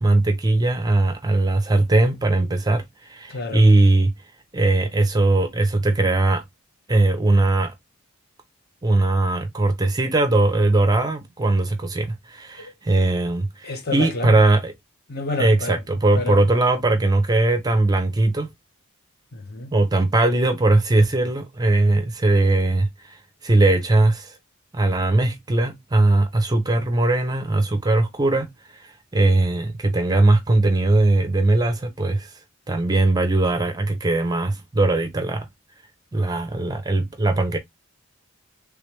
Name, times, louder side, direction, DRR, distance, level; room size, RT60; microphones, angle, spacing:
voice 1, 0.0-4.1 4.5-6.4 6.9-7.7 8.8-14.7 15.4-18.5 19.7-23.2 23.4-24.3 24.7-28.5 28.8-32.3 32.7-35.5 36.1-37.6, right 2 dB, 15° right, 0.5 m, -20 dB
voice 2, 3.3-3.7 12.6-12.7 13.6-14.4 15.1-15.8 16.1-16.4 19.3-19.7, left 3 dB, 45° left, 0.6 m, -29 dB
3.3 x 3.2 x 3.2 m
head